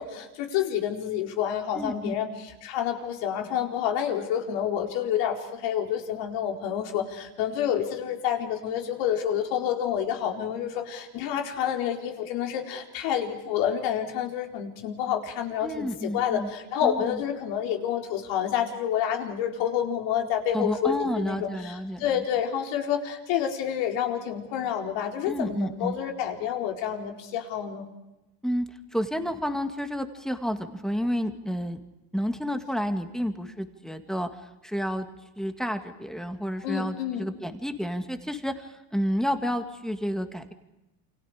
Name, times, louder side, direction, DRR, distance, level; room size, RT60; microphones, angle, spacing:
voice 1, 0.0-27.9 36.6-37.3, left 9 dB, 60° left, 3 dB, 4.4 m, -28 dB
voice 2, 1.7-2.1 15.6-16.5 16.8-17.2 20.5-22.2 25.3-26.0 28.4-31.8 32.1-34.3 34.6-35.1 35.4-40.5, equal, ahead, 7 dB, 2.0 m, -30 dB
29.0 x 25.5 x 5.0 m, 0.97 s
supercardioid pair, 120°, 48 cm